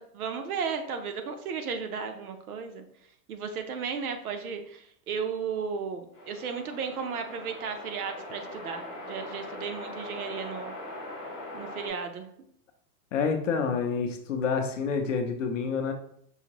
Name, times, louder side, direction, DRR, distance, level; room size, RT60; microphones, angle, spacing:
voice 1, 0.0-2.8 3.3-10.7 11.5-12.3, right 6 dB, 65° right, 6 dB, 0.8 m, -34 dB
sound 1, 6.1-11.9, left 1 dB, ahead, 0.5 m, -41 dB
voice 2, 13.1-15.9, left 5 dB, 50° left, 5 dB, 0.6 m, -28 dB
5.6 x 2.6 x 2.9 m, 0.67 s
supercardioid pair, 180°, 48 cm